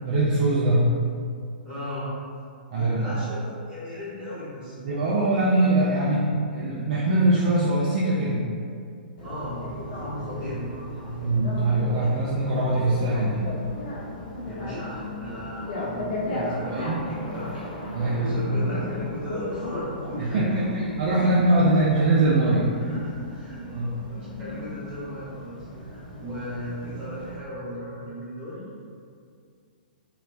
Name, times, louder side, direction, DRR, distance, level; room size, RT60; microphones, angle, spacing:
voice 1, 0.0-0.9 2.7-3.2 4.8-8.4 11.1-13.4 16.6-17.1 17.9-18.6 20.2-22.7 23.7-23.9 25.7-25.8, right 2 dB, 40° right, -6 dB, 0.4 m, -22 dB
voice 2, 1.6-2.1 2.7-5.4 9.2-11.2 14.4-20.9 21.5-21.6 22.8-28.6, equal, 20° right, -10 dB, 1.1 m, -37 dB
Bicycle, 9.2-27.4, left 1 dB, 60° left, 0.7 m, -35 dB
2.9 x 2.1 x 2.4 m, 2.3 s
figure-of-eight pair, 115°, 5 cm